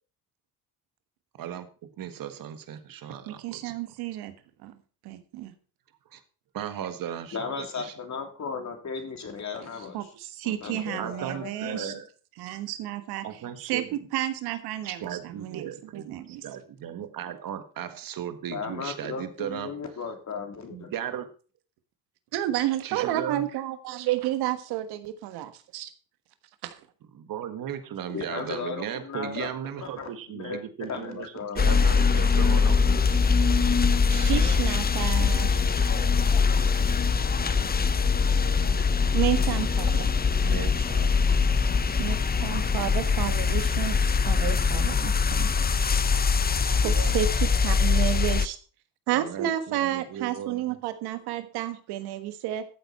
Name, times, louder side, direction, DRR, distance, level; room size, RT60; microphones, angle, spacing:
voice 1, 2.0-3.7 6.1-6.2 6.5-7.9 11.0-12.0 13.2-13.9 14.8-19.7 20.7-21.3 22.8-23.5 27.1-33.2 40.4-41.2 46.8-47.2 49.1-50.8, right 9 dB, 60° right, 9 dB, 1.7 m, -36 dB
voice 2, 3.3-4.3 4.6-4.8 5.0-5.5 9.9-11.9 12.4-13.2 13.6-16.4 22.3-25.9 26.6-26.8 34.1-35.5 39.1-40.1 42.0-44.0 44.2-45.5 47.1-48.6 49.1-52.6, right 13 dB, 80° right, 11 dB, 1.4 m, -31 dB
voice 3, 7.3-10.1 10.4-10.8 18.5-20.9 28.1-29.5 29.8-30.6 30.9-31.7, left 5 dB, 45° left, 4 dB, 3.3 m, -35 dB
voice 4, 10.8-12.0 34.3-34.5 35.1-35.3 35.6-37.7 38.3-39.2, left 7 dB, 85° left, -2 dB, 3.2 m, -43 dB
sound 1, 31.6-48.5, left 5 dB, 25° left, 0.8 m, -23 dB
13.5 x 8.0 x 4.3 m, 0.38 s
supercardioid pair, 65°, 38 cm